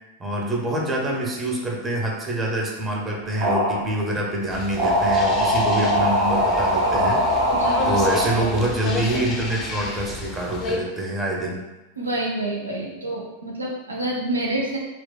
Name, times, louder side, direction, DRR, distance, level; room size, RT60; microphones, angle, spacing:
voice 1, 0.2-7.2 7.9-11.6, right 1 dB, 15° right, -2 dB, 0.6 m, -26 dB
sound 1, 3.2-3.8 4.7-8.2, equal, 45° right, 1.3 m, -21 dB
sound 2, 4.5-10.8, left 3 dB, 30° left, 0.5 m, -32 dB
voice 2, 7.5-7.9 12.0-14.8, right 1 dB, 80° right, -2 dB, 0.6 m, -27 dB
4.2 x 2.1 x 2.2 m, 1.1 s
figure-of-eight pair, 90°, 0 cm